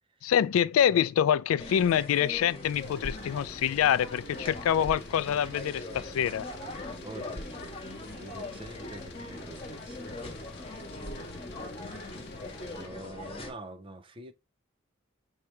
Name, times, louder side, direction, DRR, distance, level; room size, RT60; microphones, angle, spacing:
voice 1, 0.2-6.5, left 9 dB, 85° left, 0.3 m, -26 dB
sound 1, 1.6-13.5, left 1 dB, 25° left, 1.2 m, -41 dB
sound 2, 2.6-12.9, left 3 dB, 55° left, 0.7 m, -48 dB
voice 2, 7.0-7.7 8.1-10.7 11.3-11.4 12.6-14.3, right 2 dB, 25° right, 0.5 m, -46 dB
4.7 x 2.9 x 3.1 m
head